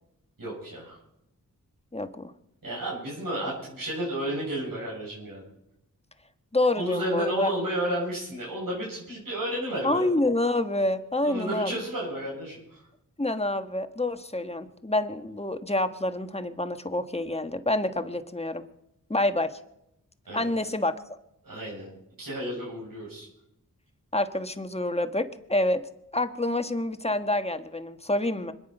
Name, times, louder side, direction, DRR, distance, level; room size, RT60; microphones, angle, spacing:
voice 1, 0.4-1.0 2.6-5.4 6.7-10.0 11.2-12.9 20.3-20.5 21.4-21.9 22.2-23.3, right 1 dB, 80° right, -5 dB, 8.0 m, -32 dB
voice 2, 1.9-2.3 6.5-7.5 9.8-11.7 13.2-18.6 19.1-19.6 20.3-20.9 24.1-25.8 26.1-28.5, left 1 dB, 20° left, 9 dB, 1.3 m, -27 dB
25.5 x 9.8 x 5.5 m, 0.81 s
wide cardioid pair, 60°, 34 cm